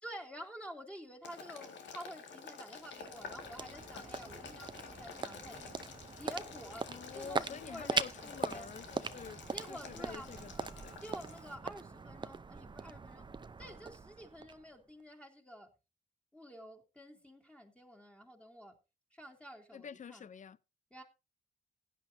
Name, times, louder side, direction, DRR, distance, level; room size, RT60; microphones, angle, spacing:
voice 1, 0.0-5.7 6.2-6.9 7.1-8.7 9.5-10.3 11.0-13.3 13.6-15.7 16.3-18.7 19.1-20.3 20.9-21.0, equal, 5° left, 2.8 m, -49 dB
Boiling, 1.2-11.5, left 5 dB, 85° left, 2.0 m, -50 dB
sound 1, 2.6-15.0, right 4 dB, 25° right, 0.6 m, -41 dB
voice 2, 6.9-11.0 19.7-20.6, left 6 dB, 45° left, 0.6 m, -48 dB
sound 2, 9.3-13.0, left 3 dB, 25° left, 4.1 m, -66 dB
16.5 x 10.0 x 2.7 m
cardioid pair, 95°, 18 cm